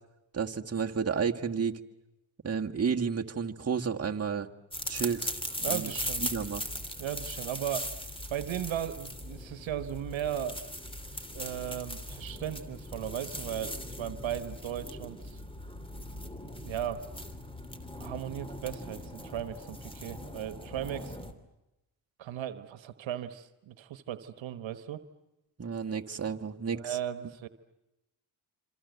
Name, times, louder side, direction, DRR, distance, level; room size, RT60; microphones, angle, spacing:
voice 1, 0.3-1.8 2.4-4.5 4.9-5.3 5.7-5.9 6.2-6.6 25.6-27.0, right 6 dB, 30° right, 2 dB, 1.8 m, -31 dB
sound 1, 4.7-21.3, equal, 10° left, 3.0 m, -39 dB
voice 2, 5.6-6.3 7.0-7.9 8.3-10.6 11.3-15.4 16.5-17.1 18.0-21.2 22.2-25.1 26.7-27.5, right 10 dB, 80° right, 11 dB, 1.3 m, -36 dB
26.5 x 26.5 x 8.1 m, 0.95 s
cardioid pair, 65°, 45 cm